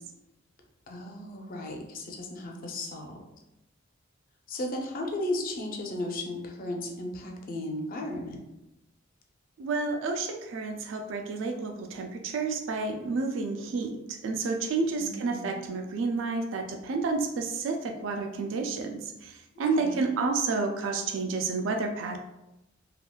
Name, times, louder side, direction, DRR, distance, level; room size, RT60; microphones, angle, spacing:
voice 1, 0.9-3.2 4.5-8.4 15.0-15.5 19.8-20.0, left 1 dB, 45° left, 1 dB, 0.5 m, -35 dB
voice 2, 9.6-22.2, right 4 dB, 70° right, 3 dB, 0.3 m, -30 dB
3.4 x 2.3 x 2.2 m, 0.93 s
head